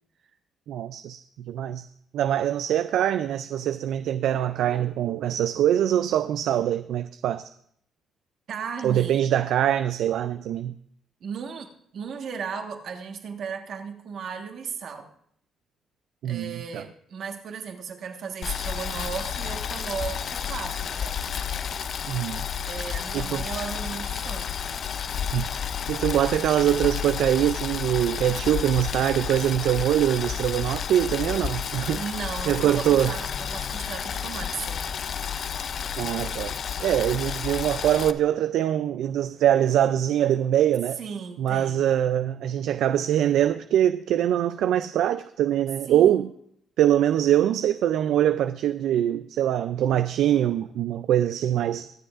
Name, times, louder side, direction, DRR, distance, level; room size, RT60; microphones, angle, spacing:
voice 1, 0.7-1.9 2.1-7.5 8.8-10.7 16.2-16.8 22.1-22.4 23.1-23.4 25.3-25.5 25.9-32.0 32.5-33.1 36.0-36.6 36.8-41.0 41.4-46.3 46.8-51.9, right 11 dB, 80° right, 0.3 m, -23 dB
voice 2, 8.5-9.2 11.2-15.1 16.2-21.2 22.6-24.6 32.0-34.8 41.0-41.8 45.9-46.3, right 6 dB, 65° right, 1.4 m, -36 dB
Boiling, 18.4-38.1, left 8 dB, 55° left, 0.4 m, -31 dB
22.5 x 7.7 x 2.5 m
cardioid pair, 90°, 0 cm